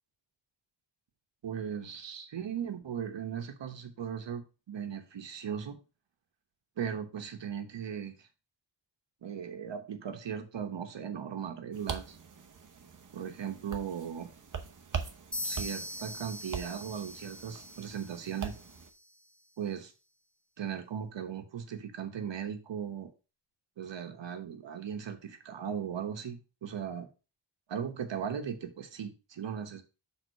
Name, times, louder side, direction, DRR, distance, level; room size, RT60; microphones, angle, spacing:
voice 1, 1.4-4.4 4.7-5.8 6.8-8.3 9.2-12.2 13.1-14.3 15.4-18.5 19.6-19.9 20.6-23.1 23.8-27.1 27.7-29.8, right 8 dB, 85° right, 7 dB, 1.1 m, -38 dB
sound 1, 11.7-18.9, right 6 dB, 45° right, 0.9 m, -42 dB
sound 2, 15.3-19.1, left 1 dB, ahead, 0.5 m, -42 dB
6.4 x 3.7 x 5.2 m, 0.32 s
wide cardioid pair, 140°, 43 cm